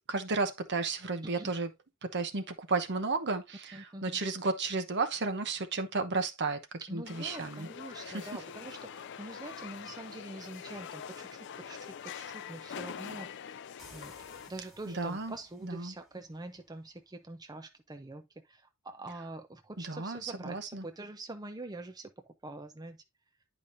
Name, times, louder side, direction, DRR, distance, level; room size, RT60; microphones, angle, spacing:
voice 1, 0.1-1.7 2.1-6.6 6.9-7.7 8.1-8.3 14.9-15.3 15.6-15.9 19.8-20.8, right 3 dB, 55° right, 1.0 m, -33 dB
voice 2, 1.2-1.5 3.7-4.2 6.9-13.3 13.9-14.1 14.5-22.1 22.4-23.0, right 2 dB, 20° right, 0.6 m, -45 dB
sound 1, 7.0-14.5, left 7 dB, 55° left, 0.4 m, -44 dB
sound 2, 13.8-17.3, left 1 dB, ahead, 2.2 m, -59 dB
10.0 x 5.0 x 2.6 m
head